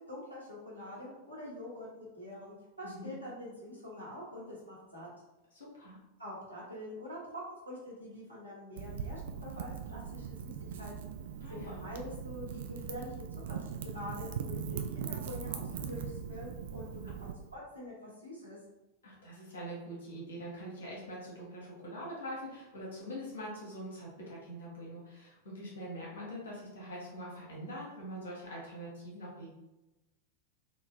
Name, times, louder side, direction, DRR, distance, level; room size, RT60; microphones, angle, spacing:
voice 1, 0.1-5.1 6.2-11.1 11.5-18.6, left 1 dB, 90° right, -7 dB, 1.2 m, -45 dB
voice 2, 5.5-6.0 11.4-11.8 19.0-29.5, equal, 65° left, -4 dB, 1.2 m, -44 dB
Wind / Fire, 8.8-17.3, right 7 dB, 60° right, 0.3 m, -40 dB
3.7 x 2.1 x 2.6 m, 1.0 s
figure-of-eight pair, 90°, 0 cm